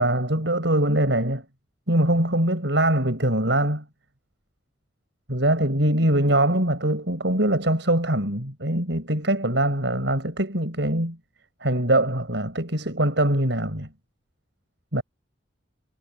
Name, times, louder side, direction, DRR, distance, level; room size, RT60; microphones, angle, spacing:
voice 1, 0.0-1.4 1.9-3.8 5.3-11.2 11.6-13.9 14.9-15.0, right 1 dB, 70° right, 6.3 m, -22 dB
head